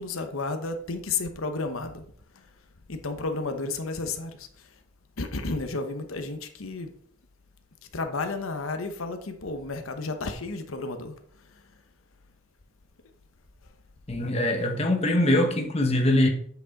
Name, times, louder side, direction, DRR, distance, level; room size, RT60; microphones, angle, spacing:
voice 1, 0.0-2.0 2.3-2.5 2.9-4.7 5.2-6.9 7.9-11.1 11.5-11.6, left 3 dB, 85° left, 1.0 m, -32 dB
voice 2, 14.1-16.3, left 1 dB, 30° left, 1.0 m, -23 dB
8.1 x 6.1 x 4.1 m
head